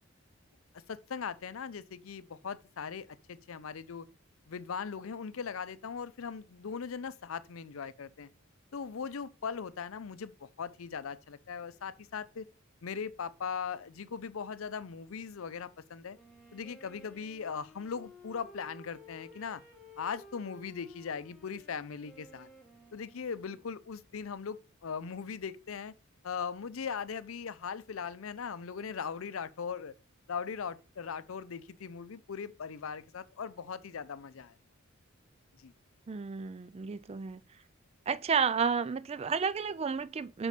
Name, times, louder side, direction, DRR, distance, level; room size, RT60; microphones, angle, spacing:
voice 1, 0.9-4.1 4.5-8.3 8.7-12.5 12.8-16.2 16.5-19.6 20.0-22.5 22.9-25.9 26.2-29.9 30.3-34.5 35.6-35.7, left 6 dB, 75° left, 0.5 m, -39 dB
Wind instrument woodwind instrument, 16.1-23.9, left 2 dB, ahead, 2.0 m, -55 dB
voice 2, 36.1-37.4 38.1-40.5, right 6 dB, 30° right, 0.3 m, -31 dB
6.7 x 5.3 x 4.9 m
head